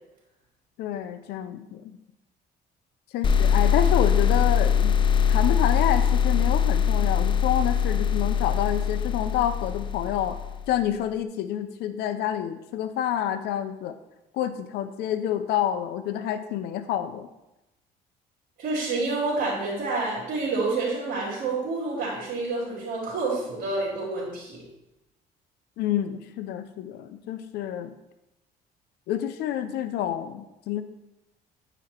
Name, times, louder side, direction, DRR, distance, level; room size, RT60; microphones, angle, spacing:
voice 1, 0.8-1.8 3.1-5.0 5.3-10.4 10.7-14.0 14.3-17.3 25.8-27.9 29.1-30.8, left 10 dB, 75° left, 9 dB, 0.5 m, -28 dB
sound 1, 3.2-10.8, left 7 dB, 30° left, 0.5 m, -22 dB
voice 2, 18.6-24.6, right 3 dB, 60° right, -9 dB, 3.0 m, -28 dB
9.0 x 4.9 x 4.3 m, 0.93 s
cardioid pair, 110°, 17 cm